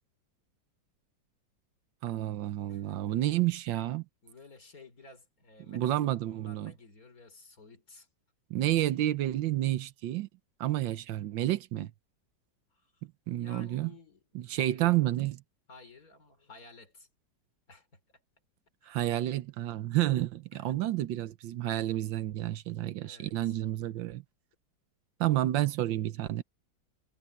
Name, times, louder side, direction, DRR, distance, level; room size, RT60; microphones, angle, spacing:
voice 1, 2.0-4.0 5.7-6.7 8.5-10.3 10.6-11.9 13.3-13.9 14.3-15.4 18.9-24.2 25.2-26.4, right 14 dB, 80° right, 1.5 m, -30 dB
voice 2, 4.2-6.0 6.3-8.1 12.7-13.0 13.3-15.0 15.7-17.1 17.7-18.0 18.8-19.0 20.5-20.7 23.0-23.6, left 3 dB, 50° left, 4.0 m, -54 dB
omnidirectional pair, 2.0 m